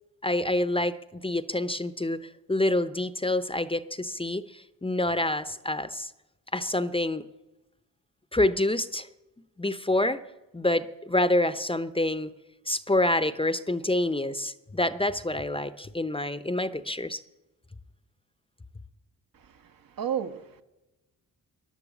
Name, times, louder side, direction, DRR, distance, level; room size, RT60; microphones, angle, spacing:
voice 1, 0.2-2.2 2.5-6.1 6.5-7.2 8.3-9.1 9.6-10.2 10.5-12.3 12.7-17.2, left 1 dB, 15° left, 0.7 m, -27 dB
voice 2, 19.3-20.6, right 8 dB, 65° right, 1.3 m, -34 dB
15.5 x 10.5 x 7.1 m
supercardioid pair, 55°, 37 cm